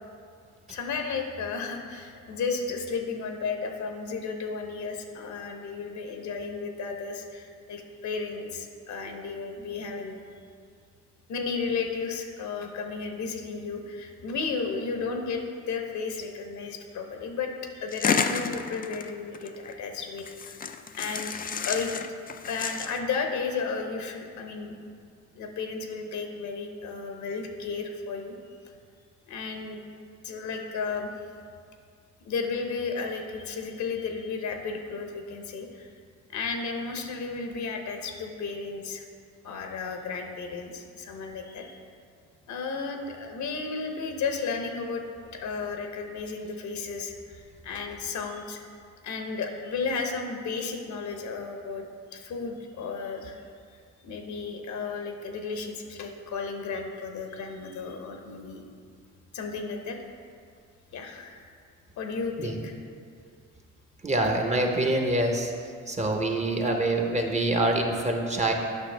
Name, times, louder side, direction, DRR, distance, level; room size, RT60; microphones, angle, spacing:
voice 1, 0.7-10.2 11.3-20.6 20.9-21.3 21.7-21.9 22.4-24.8 25.4-28.3 29.3-29.8 30.2-31.1 32.2-35.9 36.3-39.0 39.4-41.8 42.5-45.0 45.4-48.6 49.0-51.8 52.1-53.4 54.0-58.6 59.3-60.0 60.9-61.5 62.0-62.7 64.2-64.3, left 4 dB, 70° left, 4 dB, 0.9 m, -33 dB
sound 1, 17.9-19.7 20.2-23.0, left 6 dB, 30° left, 0.4 m, -31 dB
voice 2, 64.0-65.5 65.9-68.5, right 1 dB, 25° right, 2 dB, 0.9 m, -25 dB
8.4 x 5.8 x 3.3 m, 2.2 s
cardioid pair, 90°, 30 cm